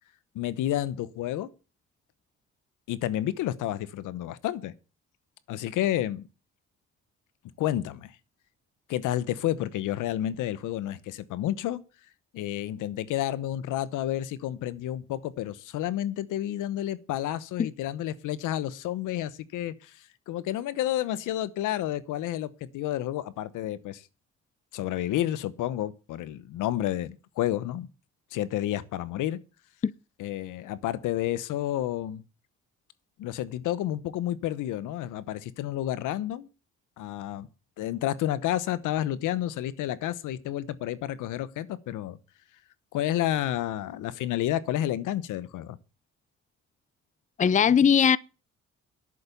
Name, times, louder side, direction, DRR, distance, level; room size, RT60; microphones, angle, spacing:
voice 1, 0.3-1.5 2.9-4.7 5.5-6.2 7.6-8.1 8.9-11.8 12.3-19.9 20.3-24.0 24.7-27.9 28.3-29.4 30.2-32.2 33.2-36.5 37.0-37.5 37.8-42.2 42.9-45.8, left 13 dB, 90° left, 1.0 m, -30 dB
voice 2, 47.4-48.2, left 7 dB, 25° left, 0.5 m, -20 dB
11.0 x 8.8 x 6.8 m
cardioid pair, 90°, 30 cm